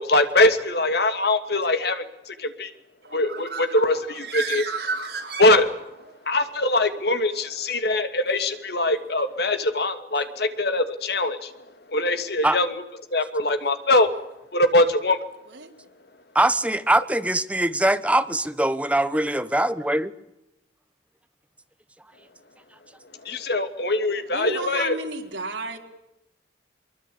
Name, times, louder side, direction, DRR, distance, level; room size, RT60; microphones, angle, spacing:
voice 1, 0.0-2.7 3.1-4.7 5.4-5.7 6.3-11.5 11.9-12.8 13.1-14.1 14.5-15.2 23.2-25.0, left 2 dB, 60° left, 9 dB, 2.6 m, -22 dB
Bird, 3.0-6.1, right 4 dB, 60° right, 5.7 m, -32 dB
voice 2, 16.3-20.1, right 1 dB, 5° right, 13 dB, 1.1 m, -22 dB
voice 3, 24.3-25.8, right 2 dB, 85° right, 4 dB, 4.2 m, -32 dB
24.0 x 23.5 x 8.8 m, 0.87 s
head